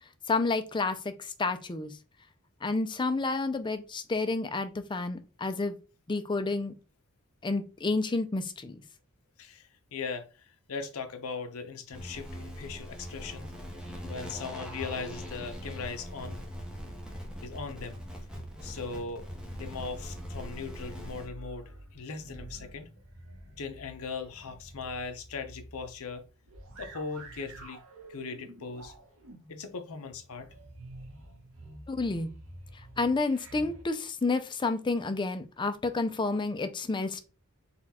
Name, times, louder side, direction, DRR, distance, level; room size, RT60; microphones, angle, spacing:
voice 1, 0.3-1.9 2.6-5.7 6.1-6.7 7.4-8.8 31.9-32.3 33.0-37.2, left 3 dB, 20° left, 0.4 m, -30 dB
voice 2, 9.4-13.5 14.1-16.4 17.4-18.0 18.6-19.2 19.6-22.9 23.6-26.2 26.8-27.8 28.1-28.9 29.5-30.5, left 4 dB, 70° left, 0.7 m, -39 dB
sound 1, 11.9-21.3, equal, 5° right, 0.9 m, -41 dB
sound 2, 19.5-33.8, right 1 dB, 65° right, 1.0 m, -49 dB
4.2 x 2.3 x 4.2 m
head